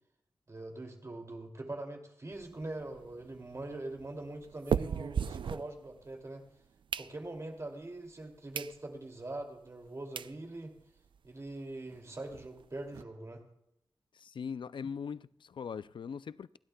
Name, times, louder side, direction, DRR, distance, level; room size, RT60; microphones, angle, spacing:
voice 1, 0.5-6.4 7.0-10.7 11.2-13.4, right 2 dB, 35° right, 2.6 m, -43 dB
sound 1, 2.3-6.3 6.6-7.6 8.1-8.2 8.5-8.8 9.2-9.3 9.9-10.0 10.2-10.4 10.8-10.9 11.0-11.2 11.5-11.6 11.9-13.0, right 7 dB, 80° right, 0.4 m, -38 dB
voice 2, 14.1-16.6, left 6 dB, 75° left, 0.4 m, -41 dB
29.0 x 11.5 x 2.3 m
wide cardioid pair, 105°, 8 cm